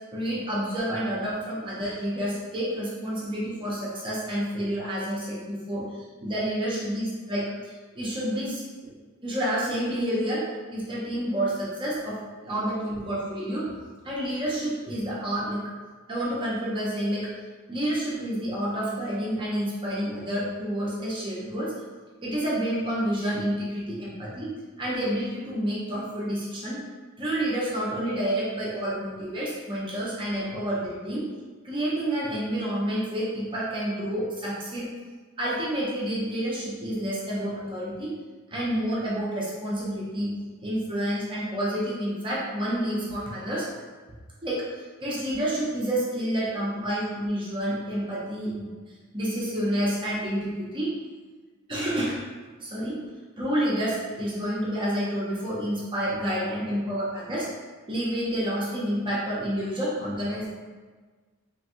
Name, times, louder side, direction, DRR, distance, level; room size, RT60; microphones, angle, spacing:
voice 1, 0.1-5.9 6.2-8.9 9.2-13.7 14.0-15.6 16.1-17.3 17.7-21.7 22.2-26.8 27.2-31.2 31.6-34.9 35.4-38.1 38.5-40.3 40.6-43.7 44.4-44.7 45.0-48.7 49.1-51.0 51.7-52.2 52.6-53.0 53.4-57.5 57.9-60.5, equal, 20° right, -6 dB, 0.7 m, -29 dB
3.2 x 3.1 x 2.6 m, 1.4 s
head